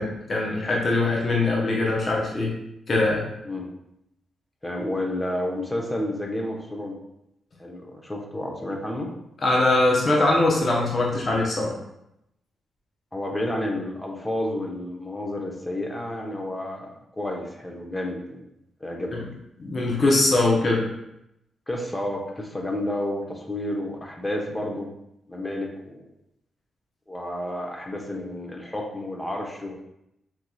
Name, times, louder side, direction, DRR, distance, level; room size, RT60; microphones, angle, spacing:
voice 1, 0.0-2.5 2.9-3.3 9.4-11.7 19.1-19.2 19.6-20.9, left 2 dB, 50° left, -3 dB, 0.8 m, -22 dB
voice 2, 4.6-7.0 7.6-9.1 13.1-16.9 17.2-18.4 18.8-19.1 21.7-24.9 25.3-26.1 27.1-29.8, left 1 dB, 20° left, 0 dB, 0.9 m, -30 dB
3.8 x 2.8 x 2.3 m, 0.82 s
supercardioid pair, 45°, 0 cm